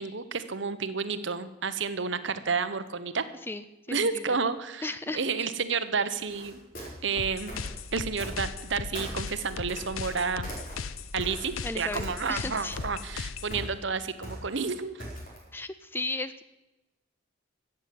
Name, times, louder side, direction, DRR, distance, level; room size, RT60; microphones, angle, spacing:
voice 1, 0.0-3.2 3.9-4.9 5.1-6.6 7.0-7.5 7.9-10.5 11.1-15.0, right 5 dB, 60° right, 11 dB, 1.0 m, -30 dB
voice 2, 3.5-4.4 4.8-5.5 11.6-12.0 12.3-12.8 15.5-16.4, left 2 dB, 10° left, 13 dB, 0.4 m, -35 dB
sound 1, 6.2-8.7 8.9-11.6 11.9-12.5 12.7-15.5, equal, 40° left, 4.6 m, -40 dB
sound 2, 7.2-13.6, left 5 dB, 85° left, 0.7 m, -38 dB
14.5 x 7.7 x 9.2 m, 1.0 s
head